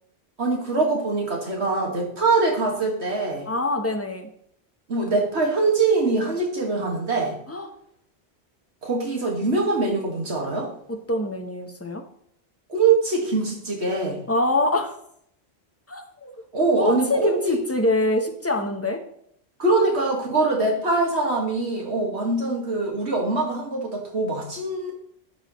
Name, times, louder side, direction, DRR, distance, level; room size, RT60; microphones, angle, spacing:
voice 1, 0.4-3.5 4.9-7.4 8.8-10.7 12.7-14.2 16.5-17.6 19.6-24.9, right 3 dB, 80° right, -1 dB, 2.2 m, -23 dB
voice 2, 3.5-4.3 7.5-7.7 10.9-12.0 14.3-14.9 15.9-16.3 16.7-19.0, left 2 dB, 15° left, 4 dB, 1.0 m, -24 dB
11.0 x 6.3 x 3.1 m, 0.67 s
omnidirectional pair, 1.1 m